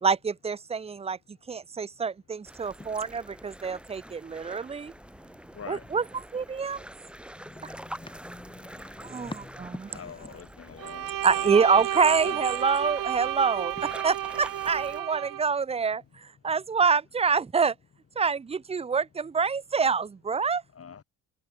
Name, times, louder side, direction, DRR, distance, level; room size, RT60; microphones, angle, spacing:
voice 1, 0.0-4.9 5.7-6.9 7.6-7.7 9.0-9.3 11.2-13.8 14.0-17.7 18.2-20.6, right 5 dB, 20° right, 0.5 m, -26 dB
sound 1, 2.4-15.0, right 1 dB, 5° right, 1.4 m, -46 dB
voice 2, 5.5-6.0 7.3-9.7 10.0-10.3 13.8-13.9, left 2 dB, 15° left, 5.1 m, -46 dB
voice 3, 9.9-11.1 11.5-12.3 20.8-21.0, left 7 dB, 40° left, 2.4 m, -43 dB
Bowed string instrument, 10.8-15.4, right 12 dB, 70° right, 1.9 m, -32 dB
cardioid pair, 105°, 35 cm